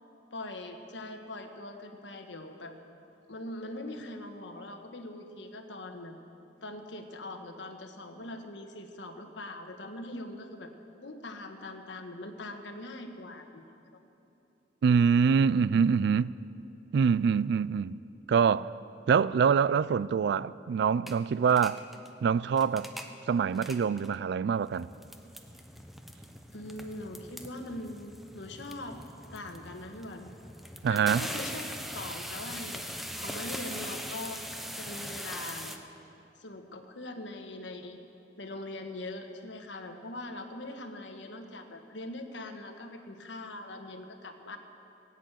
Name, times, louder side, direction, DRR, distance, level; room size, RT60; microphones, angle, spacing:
voice 1, 0.3-2.8 3.3-6.1 6.6-10.7 11.0-14.0 26.5-29.0 29.3-30.3 30.9-34.4 34.7-35.8 36.4-38.0 38.4-44.6, left 2 dB, 80° left, 1.3 m, -42 dB
voice 2, 14.8-16.3 16.9-18.0 18.3-18.7 19.1-21.8 22.2-22.9 23.3-24.9 30.8-31.3, right 6 dB, 65° right, 0.3 m, -25 dB
sound 1, 21.1-21.2 21.4-22.1 22.5-23.1 23.5-24.2 24.6-35.8, equal, ahead, 0.8 m, -41 dB
17.5 x 8.4 x 8.9 m
head